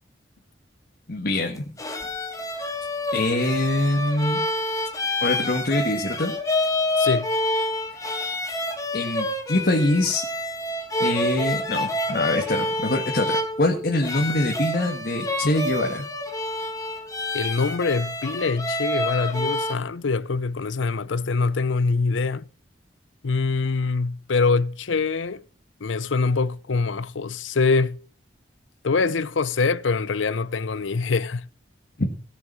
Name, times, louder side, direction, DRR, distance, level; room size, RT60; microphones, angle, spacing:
voice 1, 1.1-1.6 3.1-4.4 5.2-6.3 8.9-10.2 11.0-16.1 32.0-32.1, left 1 dB, 55° left, 1.6 m, -24 dB
sound 1, 1.6-19.7, left 1 dB, 20° left, 1.8 m, -28 dB
voice 2, 7.0-7.3 17.3-22.5 23.2-25.4 25.8-28.0 28.8-31.4, left 4 dB, 90° left, 0.6 m, -24 dB
17.0 x 7.0 x 6.1 m
head